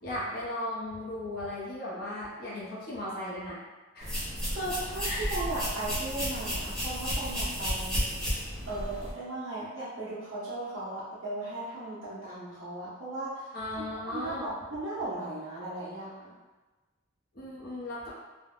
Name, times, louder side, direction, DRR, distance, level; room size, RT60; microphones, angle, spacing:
voice 1, 0.0-3.6 3.9-4.2 5.0-5.3 13.5-14.5 17.3-18.1, left 1 dB, 50° left, -6 dB, 0.6 m, -36 dB
sound 1, 4.0-9.1, equal, 5° left, 1.0 m, -32 dB
voice 2, 4.5-8.0 8.7-13.9 14.1-16.3, right 2 dB, 80° right, -12 dB, 1.0 m, -37 dB
3.3 x 2.1 x 2.4 m, 1.2 s
head